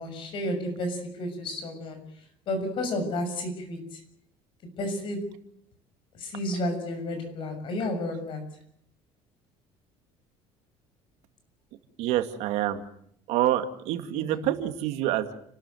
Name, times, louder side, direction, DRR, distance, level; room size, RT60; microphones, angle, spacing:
voice 1, 0.0-2.0 2.5-4.0 4.8-5.3 6.1-8.5 14.1-14.5, left 1 dB, 50° left, 7 dB, 6.5 m, -32 dB
voice 2, 12.0-12.8 13.3-15.3, right 13 dB, 75° right, 8 dB, 2.3 m, -27 dB
30.0 x 13.0 x 9.3 m, 0.69 s
cardioid pair, 150°, 11 cm